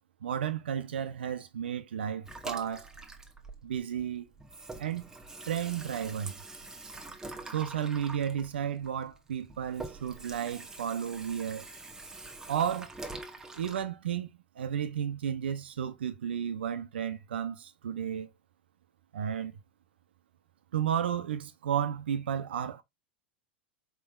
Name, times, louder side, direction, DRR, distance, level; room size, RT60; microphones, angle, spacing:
voice 1, 0.2-2.9 3.6-4.3 4.8-5.0 5.5-6.3 7.5-11.7 12.5-12.9 13.5-14.3 14.6-18.3 19.1-19.5 20.7-22.8, right 9 dB, 80° right, 0.5 m, -33 dB
Water tap faucet / Sink (filling or washing), 2.3-4.1 4.3-13.8, right 2 dB, 10° right, 0.9 m, -45 dB
4.5 x 3.5 x 2.2 m
hypercardioid pair, 95°, 6 cm